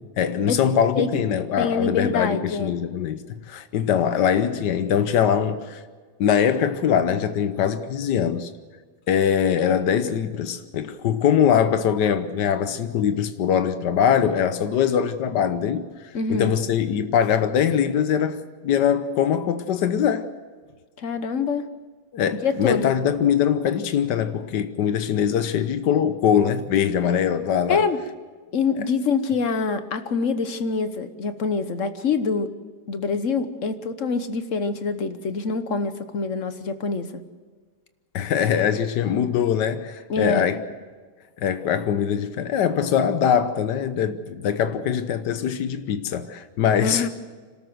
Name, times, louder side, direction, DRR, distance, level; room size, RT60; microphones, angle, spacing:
voice 1, 0.0-5.8 6.2-8.5 9.1-15.9 16.3-20.3 22.1-27.8 38.1-40.6 41.4-47.1, left 8 dB, 85° left, 1.5 m, -22 dB
voice 2, 1.6-2.7 16.1-16.5 21.0-21.6 22.4-22.9 27.7-28.0 28.5-32.5 32.9-37.1 40.1-40.5 46.8-47.1, left 4 dB, 50° left, 1.3 m, -25 dB
26.5 x 13.0 x 7.8 m
omnidirectional pair, 1.8 m